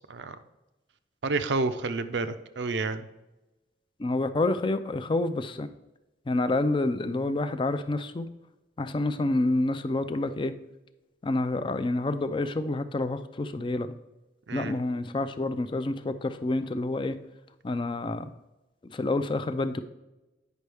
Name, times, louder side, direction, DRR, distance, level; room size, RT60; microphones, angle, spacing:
voice 1, 1.2-3.1 14.5-14.8, right 3 dB, 85° right, 11 dB, 0.6 m, -29 dB
voice 2, 4.0-5.7 6.3-8.3 8.8-10.5 11.2-13.9 14.5-17.2 17.6-18.3 18.8-19.8, left 2 dB, 30° left, 10 dB, 0.4 m, -28 dB
9.3 x 5.4 x 3.4 m, 1.0 s
head